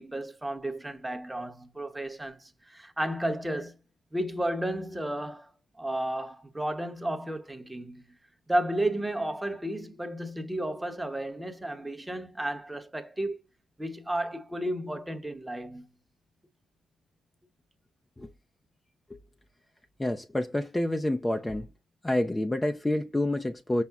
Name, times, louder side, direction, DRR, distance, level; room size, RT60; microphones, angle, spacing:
voice 1, 0.0-3.8 4.1-5.5 5.8-8.0 8.5-13.4 13.8-15.9, right 1 dB, 10° right, 0.8 m, -32 dB
voice 2, 20.0-21.7 22.0-23.8, left 1 dB, 15° left, 0.4 m, -28 dB
5.7 x 2.0 x 3.5 m
cardioid pair, 90°, 0 cm